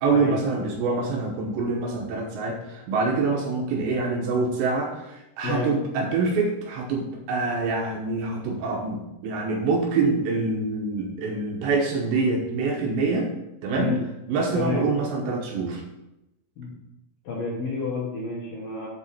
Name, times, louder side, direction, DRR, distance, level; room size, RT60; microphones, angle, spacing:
voice 1, 0.0-13.3 13.6-13.9 14.3-15.8, right 3 dB, 75° right, 0 dB, 2.9 m, -25 dB
voice 2, 17.2-18.9, left 3 dB, 60° left, -5 dB, 2.4 m, -29 dB
7.6 x 5.3 x 5.5 m, 0.90 s
omnidirectional pair, 5.7 m